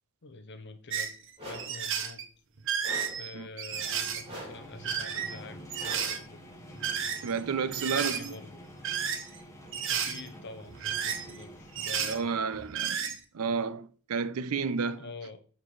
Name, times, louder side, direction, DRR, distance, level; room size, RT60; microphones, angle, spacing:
voice 1, 0.2-1.2 1.4-2.2 3.1-6.4 7.7-8.7 9.9-12.6 15.0-15.4, left 3 dB, 55° left, 0.8 m, -46 dB
sound 1, 0.9-1.1 1.5-2.2 2.6-4.2 4.7-5.4 5.7-6.2 6.7-7.4 7.7-8.3 8.8-9.4 9.7-10.2 10.6-11.4 11.8-12.2 12.5-13.1, right 8 dB, 60° right, 0.8 m, -32 dB
sound 2, 1.4-1.8 2.8-3.3 4.3-4.7 5.8-6.3, equal, 25° right, 2.7 m, -43 dB
sound 3, 3.7-12.4, equal, 15° left, 1.3 m, -48 dB
voice 2, 7.2-8.4 12.0-15.0, right 5 dB, 90° right, 0.5 m, -31 dB
9.0 x 4.4 x 3.2 m
head